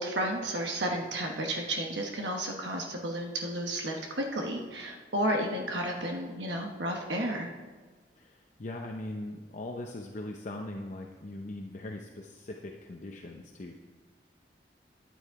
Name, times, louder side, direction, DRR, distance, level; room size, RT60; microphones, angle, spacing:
voice 1, 0.0-7.5, right 1 dB, 90° right, 2 dB, 1.2 m, -32 dB
voice 2, 8.2-13.7, left 1 dB, 45° left, 2 dB, 0.7 m, -40 dB
11.0 x 8.8 x 4.7 m, 1.4 s
head